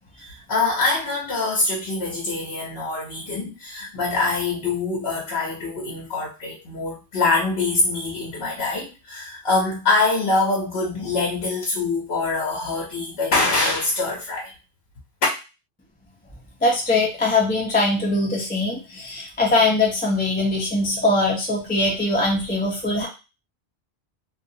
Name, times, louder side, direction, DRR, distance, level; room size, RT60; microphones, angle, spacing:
voice 1, 0.2-14.5, left 3 dB, 65° left, -4 dB, 1.1 m, -24 dB
voice 2, 16.6-23.1, left 2 dB, 10° left, -2 dB, 0.5 m, -21 dB
2.6 x 2.4 x 2.7 m, 0.29 s
omnidirectional pair, 1.1 m